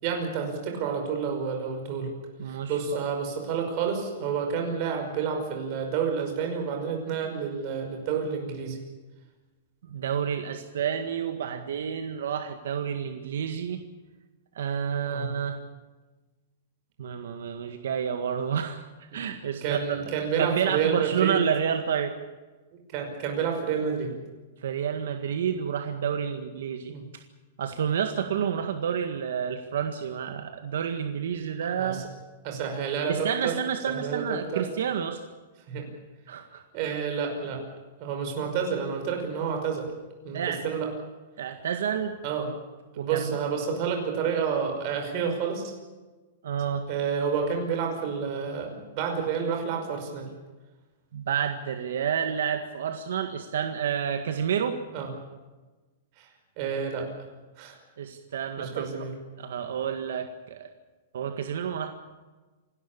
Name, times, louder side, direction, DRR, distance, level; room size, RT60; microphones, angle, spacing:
voice 1, 0.0-2.1 2.5-8.8 15.1-15.3 19.1-19.2 19.6-21.4 22.9-24.1 26.9-27.0 31.6-32.0 32.4-33.5 33.9-34.7 35.7-35.9 36.7-37.6 38.0-39.9 40.2-40.9 42.2-42.5 43.0-45.7 46.9-50.3 54.9-55.1 56.2-56.3 56.6-57.1 57.6-57.8 58.6-59.1, right 6 dB, 35° right, 3 dB, 5.5 m, -29 dB
voice 2, 2.4-2.8 9.9-13.8 14.6-15.6 17.0-18.8 19.1-19.8 20.4-22.1 24.6-26.9 27.6-32.0 33.1-35.2 36.3-36.6 40.3-40.6 41.4-42.1 43.0-43.3 46.4-46.9 51.1-54.8 58.0-58.9 59.4-60.7 61.1-61.9, right 8 dB, 75° right, 6 dB, 1.8 m, -29 dB
27.5 x 12.5 x 8.7 m, 1.2 s
supercardioid pair, 170°, 0 cm